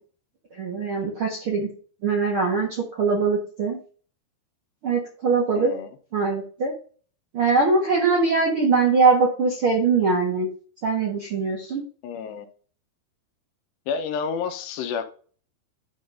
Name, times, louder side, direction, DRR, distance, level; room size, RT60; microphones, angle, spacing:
voice 1, 0.6-1.7 2.0-3.8 4.8-5.7 6.1-6.7 7.3-10.5 10.8-11.8, right 4 dB, 65° right, 1.3 m, -22 dB
voice 2, 5.6-6.0 12.0-12.5 13.9-15.0, left 6 dB, 85° left, 3.1 m, -29 dB
11.5 x 3.9 x 3.9 m
omnidirectional pair, 4.8 m